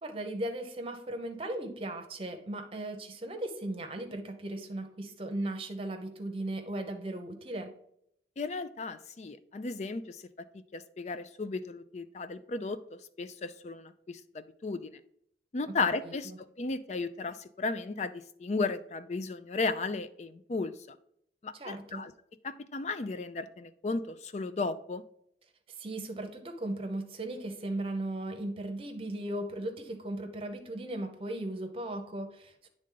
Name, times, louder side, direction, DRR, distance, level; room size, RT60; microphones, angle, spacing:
voice 1, 0.0-7.7 15.7-15.8 16.0-16.4 21.5-22.0 25.8-32.7, right 1 dB, 30° right, 5 dB, 0.8 m, -37 dB
voice 2, 8.4-10.2 10.7-14.9 15.5-16.3 16.6-20.7 21.4-22.1 22.4-25.0, left 3 dB, 40° left, 11 dB, 0.4 m, -35 dB
8.8 x 3.7 x 3.8 m, 0.71 s
head